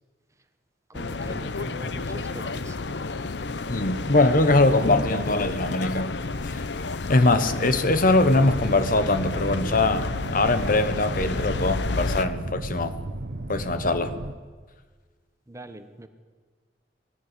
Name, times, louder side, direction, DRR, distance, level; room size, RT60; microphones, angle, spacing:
sound 1, 0.9-12.3, left 3 dB, 80° left, 0.8 m, -31 dB
voice 1, 0.9-2.8 15.5-16.1, right 1 dB, 15° right, 1.3 m, -41 dB
voice 2, 3.7-6.1 6.4-6.6 7.1-13.0 13.5-14.1, left 2 dB, 50° left, 1.2 m, -22 dB
sound 2, 8.3-14.4, right 1 dB, 75° right, 1.1 m, -34 dB
19.5 x 15.5 x 9.9 m
head